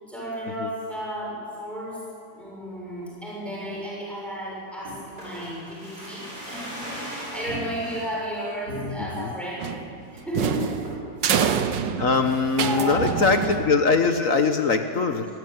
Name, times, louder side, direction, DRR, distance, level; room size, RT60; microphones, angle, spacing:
voice 1, 0.1-2.1 2.3-9.7 10.1-10.9 12.6-13.5, equal, ahead, -5 dB, 7.3 m, -33 dB
sound 1, 4.8-8.1 8.7-9.3 9.7-9.8 10.0-10.4 10.8-11.2 11.6-12.3 12.6-12.7, equal, 60° right, 7.6 m, -38 dB
voice 2, 9.0-9.3 12.0-15.3, left 4 dB, 55° left, 7 dB, 1.3 m, -22 dB
sound 2, 9.6-14.1, right 7 dB, 85° right, 1.7 m, -27 dB
25.5 x 14.5 x 9.3 m, 2.5 s
omnidirectional pair, 1.9 m